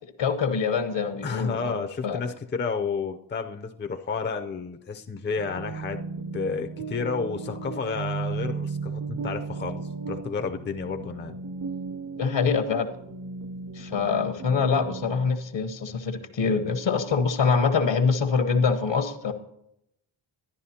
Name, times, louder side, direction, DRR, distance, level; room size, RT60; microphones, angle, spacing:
voice 1, 0.0-2.2 12.1-12.9 13.7-19.3, left 5 dB, 60° left, 8 dB, 1.1 m, -25 dB
voice 2, 1.2-6.0 6.3-11.4, left 5 dB, 25° left, 6 dB, 0.6 m, -31 dB
sound 1, 5.4-15.3, right 4 dB, 35° right, 0.7 m, -35 dB
11.5 x 10.0 x 2.8 m, 0.80 s
cardioid pair, 55°, 49 cm